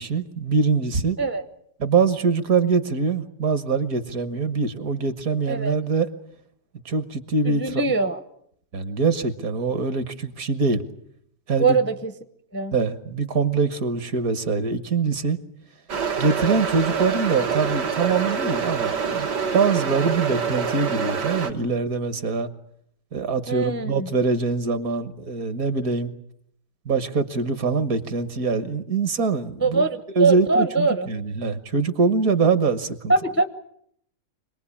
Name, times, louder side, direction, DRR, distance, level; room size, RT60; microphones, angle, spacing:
voice 1, 0.0-1.2 1.8-6.1 6.8-7.9 8.7-10.8 11.5-11.8 12.7-15.4 16.2-19.3 19.5-22.5 23.1-26.1 26.8-29.9 30.1-33.1, right 4 dB, 60° right, 11 dB, 1.7 m, -23 dB
voice 2, 7.4-8.2 11.6-12.1 12.5-12.7 23.5-24.1 29.6-31.1 33.1-33.5, right 3 dB, 15° left, 10 dB, 0.5 m, -22 dB
sound 1, 15.9-21.5, right 6 dB, 80° right, 2.2 m, -26 dB
25.5 x 19.5 x 8.5 m, 0.71 s
omnidirectional pair, 1.8 m